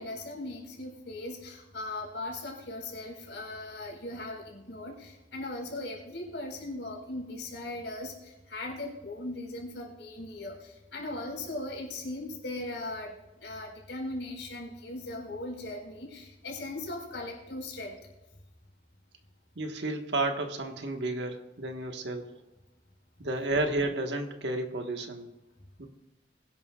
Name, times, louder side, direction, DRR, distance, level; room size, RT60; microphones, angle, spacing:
voice 1, 0.0-18.0, left 2 dB, 80° left, -1 dB, 4.7 m, -39 dB
voice 2, 19.5-22.3 23.2-25.3 25.8-25.9, right 2 dB, 70° right, 4 dB, 1.5 m, -32 dB
21.5 x 11.0 x 2.4 m, 1.0 s
head